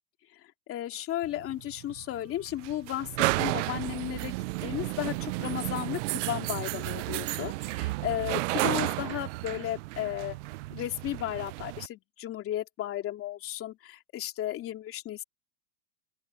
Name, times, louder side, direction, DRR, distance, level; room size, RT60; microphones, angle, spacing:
voice 1, 0.7-3.1 3.4-4.4 4.6-10.4 10.7-15.2, left 13 dB, 30° left, 2.9 m, -34 dB
sound 1, 1.2-11.9, right 21 dB, 55° right, 0.5 m, -32 dB
open air
supercardioid pair, 140°, 44 cm